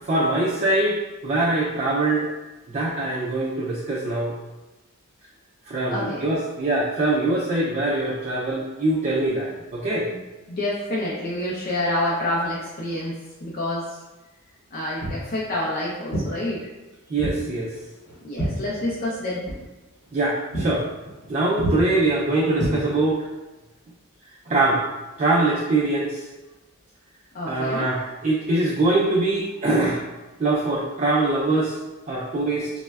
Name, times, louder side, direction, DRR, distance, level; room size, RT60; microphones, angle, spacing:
voice 1, 0.1-2.3 2.7-4.4 5.7-10.1 17.1-17.7 20.1-20.9 21.3-23.2 24.5-24.8 25.2-26.2 27.4-30.0 30.4-31.8 32.1-32.7, right 2 dB, 35° right, -5 dB, 0.3 m, -23 dB
voice 2, 5.9-6.3 10.1-10.2 10.5-13.1 13.4-13.9 14.7-16.6 18.2-19.4 27.3-27.9, left 1 dB, 40° left, -6 dB, 0.4 m, -27 dB
Walk footsteps, 15.0-15.3 16.1-16.3 17.2-17.4 17.7-19.2 19.4-19.6 20.0-20.2 20.5-20.7 21.0-21.3 21.6-21.8 22.5-23.2, right 1 dB, 90° left, 0.9 m, -28 dB
4.1 x 2.1 x 2.2 m, 1.1 s
head